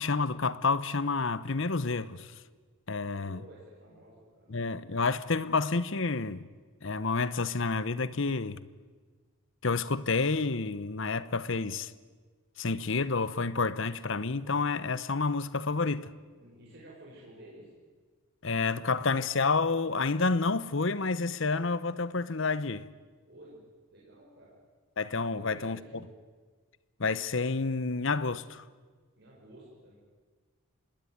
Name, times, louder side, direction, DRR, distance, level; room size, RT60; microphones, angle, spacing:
voice 1, 0.0-2.3 2.9-3.4 4.5-6.5 6.8-8.7 9.6-11.9 12.6-16.1 18.4-22.9 25.0-25.8 27.0-28.6, left 4 dB, 55° left, 0.9 m, -29 dB
voice 2, 3.2-4.6 16.4-17.7 23.3-23.6 23.9-24.5 25.3-26.1 29.2-30.0, right 1 dB, 45° right, 6.1 m, -52 dB
26.0 x 19.5 x 9.6 m
head